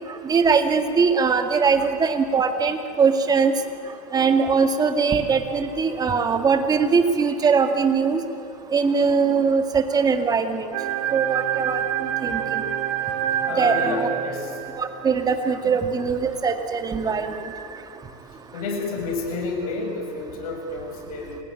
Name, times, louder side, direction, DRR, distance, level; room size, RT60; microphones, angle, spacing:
voice 1, 0.2-3.5 4.1-8.2 8.7-10.7 11.1-11.8 12.2-12.6 13.6-14.1 14.8-17.6, right 5 dB, 20° right, 6 dB, 2.0 m, -21 dB
sound 1, 10.7-15.2, right 10 dB, 75° right, 3.7 m, -27 dB
voice 2, 13.5-14.5 15.6-15.8 18.5-21.4, left 3 dB, 80° left, 3 dB, 6.6 m, -30 dB
28.0 x 19.0 x 9.7 m, 2.5 s
supercardioid pair, 125°, 18 cm